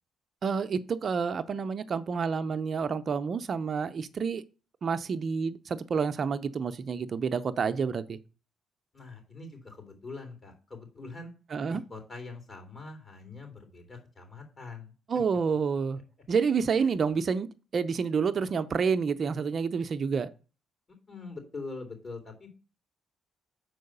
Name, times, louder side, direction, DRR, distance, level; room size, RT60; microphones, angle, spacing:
voice 1, 0.4-4.4 4.8-8.2 11.5-11.8 15.1-16.0 16.3-20.3, right 5 dB, 50° right, 0.5 m, -29 dB
voice 2, 8.9-11.3 11.7-14.9 16.7-16.9 21.1-22.5, left 3 dB, 40° left, 3.5 m, -43 dB
6.2 x 4.7 x 6.6 m
cardioid pair, 90°, 0 cm